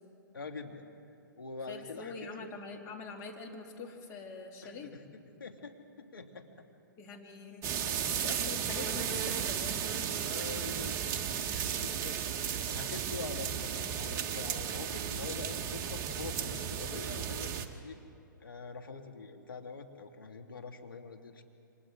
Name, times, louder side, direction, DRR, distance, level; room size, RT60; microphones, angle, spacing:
voice 1, 0.3-0.9 1.4-2.5 4.6-6.7 8.0-8.1 10.2-11.0 11.4-18.0 18.4-21.4, left 4 dB, 85° left, 4 dB, 2.2 m, -45 dB
voice 2, 1.7-4.9 7.0-7.7 8.2-10.0, left 4 dB, 30° left, 1 dB, 2.8 m, -44 dB
sound 1, 7.6-17.7, right 8 dB, 25° right, 1.2 m, -34 dB
28.0 x 25.5 x 3.8 m, 2.6 s
hypercardioid pair, 130°, 11 cm